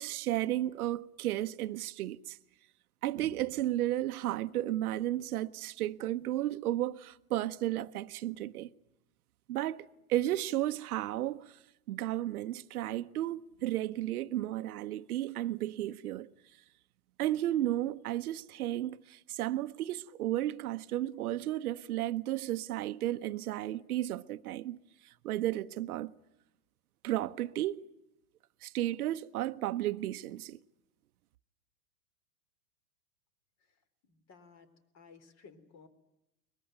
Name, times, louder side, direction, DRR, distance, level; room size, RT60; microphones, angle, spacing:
voice 1, 0.0-2.4 3.0-8.7 9.5-11.6 11.9-16.3 17.2-26.1 27.0-27.8 28.6-30.6, right 14 dB, 70° right, 1.0 m, -33 dB
voice 2, 34.0-34.7 34.9-35.9, left 5 dB, 35° left, 3.9 m, -56 dB
22.5 x 21.0 x 9.2 m
hypercardioid pair, 115°, 46 cm